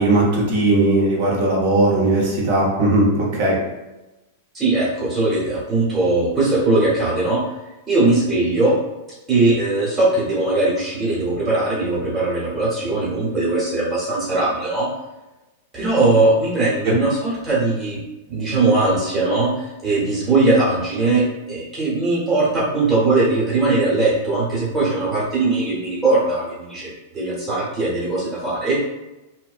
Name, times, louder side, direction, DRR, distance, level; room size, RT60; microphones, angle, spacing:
voice 1, 0.0-3.6, right 2 dB, 55° right, -3 dB, 0.7 m, -18 dB
voice 2, 4.5-7.4 7.9-8.7 9.3-14.9 15.7-18.0 18.3-28.8, right 2 dB, 15° right, -7 dB, 0.8 m, -20 dB
2.6 x 2.1 x 2.4 m, 1.0 s
supercardioid pair, 155°, 0 cm